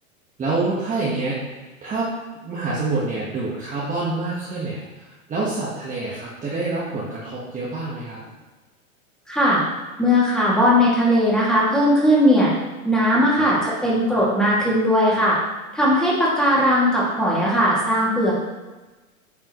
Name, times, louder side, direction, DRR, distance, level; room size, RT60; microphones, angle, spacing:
voice 1, 0.4-1.4 1.8-2.1 2.4-8.2 13.4-13.5, right 3 dB, 20° right, -7 dB, 1.4 m, -27 dB
voice 2, 9.3-9.6 10.0-12.5 12.8-15.4 15.7-18.3, equal, ahead, -7 dB, 2.3 m, -18 dB
9.2 x 5.5 x 3.1 m, 1.2 s
hypercardioid pair, 135°, 42 cm